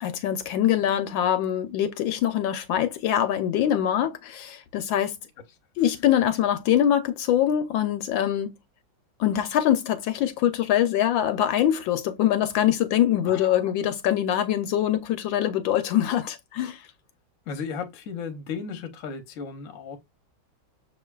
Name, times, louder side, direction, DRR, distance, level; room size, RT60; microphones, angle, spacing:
voice 1, 0.0-5.2 5.8-8.5 9.2-16.9, left 11 dB, 75° left, 1.2 m, -24 dB
voice 2, 13.2-13.6 17.5-20.0, left 5 dB, 55° left, 0.9 m, -35 dB
6.3 x 3.0 x 2.3 m
omnidirectional pair, 2.3 m